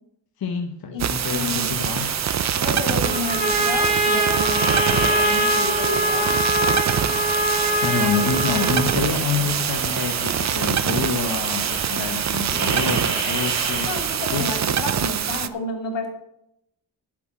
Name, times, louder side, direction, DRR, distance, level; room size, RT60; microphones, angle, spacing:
voice 1, 0.4-2.1 7.1-7.3 7.8-13.9 14.3-14.5, left 6 dB, 55° left, 5 dB, 1.0 m, -27 dB
voice 2, 0.9-1.7 2.6-6.4 13.9-16.1, left 3 dB, 70° left, 3 dB, 2.7 m, -30 dB
sound 1, 1.0-15.5, right 8 dB, 40° right, 0.5 m, -24 dB
sound 2, 1.2-14.6, right 4 dB, 75° right, 2.8 m, -32 dB
Trumpet, 3.0-9.0, equal, 20° right, 3.1 m, -23 dB
8.0 x 7.6 x 8.5 m, 0.79 s
wide cardioid pair, 130°, 45 cm